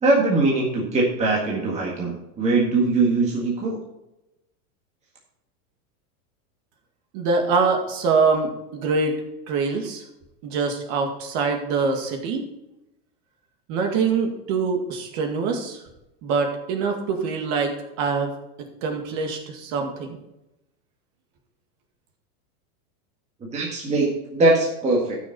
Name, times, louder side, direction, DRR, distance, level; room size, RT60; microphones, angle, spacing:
voice 1, 0.0-3.8 23.5-25.2, right 2 dB, 15° right, -3 dB, 1.7 m, -21 dB
voice 2, 7.1-9.2 9.5-10.0 10.4-12.4 13.7-15.8 16.2-18.3 18.8-20.2, right 4 dB, 45° right, 3 dB, 2.1 m, -24 dB
13.5 x 6.3 x 4.1 m, 0.92 s
supercardioid pair, 160°, 44 cm